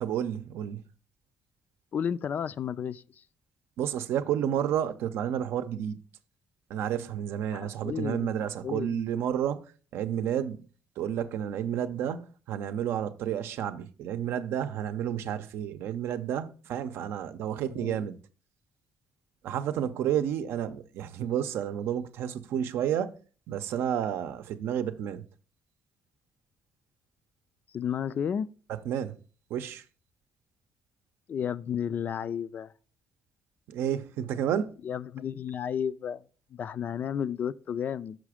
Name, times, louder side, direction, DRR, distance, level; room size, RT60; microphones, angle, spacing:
voice 1, 0.0-0.8 3.8-6.0 6.7-9.6 9.9-10.7 11.0-18.2 19.4-23.2 23.5-25.2 28.9-29.2 29.5-29.8 33.7-34.7, right 9 dB, 80° right, 0.6 m, -31 dB
voice 2, 1.9-3.2 7.5-8.3 8.6-9.0 17.7-18.1 27.7-28.5 31.3-32.7 34.8-36.2 36.5-38.2, left 8 dB, 45° left, 0.3 m, -32 dB
6.3 x 4.9 x 4.9 m
cardioid pair, 115°, 4 cm